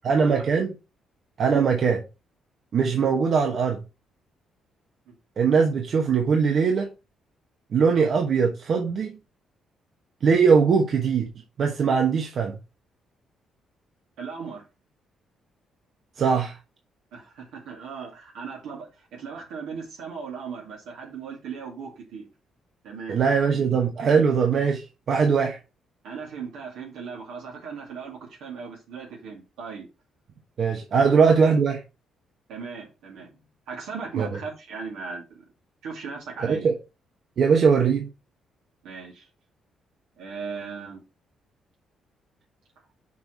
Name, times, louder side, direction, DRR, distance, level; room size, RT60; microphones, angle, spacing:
voice 1, 0.0-0.7 1.4-2.0 2.7-3.8 5.4-6.9 7.7-9.2 10.2-11.3 11.6-12.6 16.2-16.6 23.1-25.6 30.6-31.8 34.2-34.3 36.4-36.7 37.4-38.1, right 5 dB, 60° right, 1.1 m, -21 dB
voice 2, 14.2-14.6 17.1-22.3 22.8-23.2 26.0-29.9 31.0-31.1 32.5-35.5 35.8-36.7 38.8-39.3 40.2-41.0, right 5 dB, 90° right, 2.5 m, -37 dB
6.1 x 4.6 x 4.5 m
cardioid pair, 90°, 0 cm